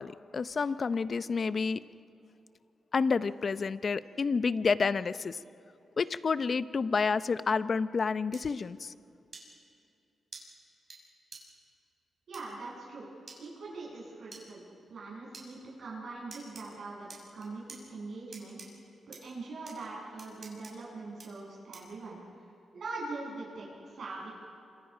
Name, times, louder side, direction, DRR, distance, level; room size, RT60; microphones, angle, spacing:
voice 1, 0.0-1.8 2.9-5.4 6.0-8.9, left 5 dB, 50° left, 14 dB, 0.6 m, -29 dB
sound 1, 8.3-8.4 9.3-9.4 10.3-10.4 10.9-11.0 11.3-11.4 12.3-12.4 13.3-13.4 14.3-14.4 15.3-15.5 16.3-16.6 17.1-17.8 18.3-18.7 19.1-19.2 19.7-19.8 20.2-20.7 21.2-21.3 21.7-22.0, right 4 dB, 50° right, 6.3 m, -47 dB
voice 2, 12.3-13.1 13.4-14.6 14.9-18.6 19.1-24.3, right 3 dB, 70° right, -5 dB, 7.8 m, -42 dB
28.0 x 26.0 x 5.0 m, 2.6 s
cardioid pair, 90°, 0 cm